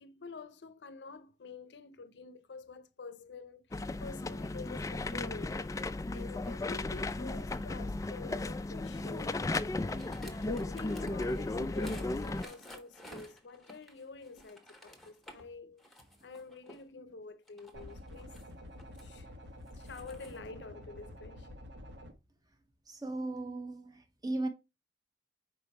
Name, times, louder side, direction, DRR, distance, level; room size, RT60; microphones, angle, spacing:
voice 1, 0.0-5.6 6.1-9.4 10.2-18.4 19.0-19.3 19.7-21.6, left 4 dB, 75° left, 0.6 m, -48 dB
sound 1, 3.7-12.4, left 2 dB, 20° left, 0.3 m, -35 dB
sound 2, 8.6-15.5 15.8-16.8 17.5-19.0 19.7-20.4, equal, ahead, 1.1 m, -52 dB
sound 3, 17.7-22.1, equal, 80° right, 1.2 m, -49 dB
voice 2, 22.9-24.5, right 2 dB, 20° right, 1.1 m, -37 dB
5.2 x 4.6 x 4.2 m
head